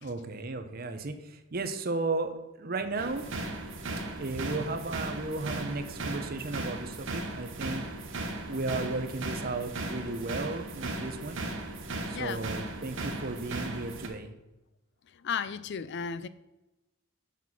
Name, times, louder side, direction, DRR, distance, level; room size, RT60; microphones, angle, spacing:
voice 1, 0.0-3.3 4.1-7.8 8.5-11.5 12.1-14.3, right 3 dB, 45° right, 0.8 m, -34 dB
sound 1, 3.0-14.1, right 2 dB, 60° right, 1.1 m, -37 dB
voice 2, 15.1-16.3, left 6 dB, 55° left, 0.4 m, -34 dB
7.3 x 6.1 x 5.5 m
head